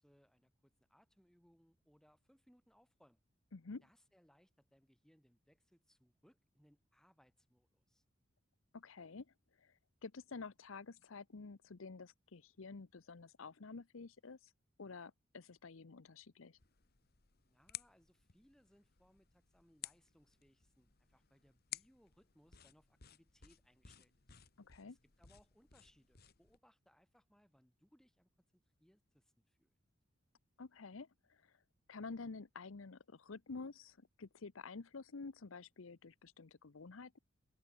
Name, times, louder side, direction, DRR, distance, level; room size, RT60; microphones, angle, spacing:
voice 1, 0.0-3.2 3.8-8.0 17.5-24.4 24.8-29.7, equal, 5° left, 5.2 m, -71 dB
voice 2, 3.5-3.8 8.7-9.3 9.6-14.5 14.8-16.6 24.6-25.0 30.6-31.6 31.9-37.2, left 4 dB, 80° left, 0.8 m, -50 dB
sound 1, 16.6-26.6, left 12 dB, 50° left, 1.6 m, -55 dB
head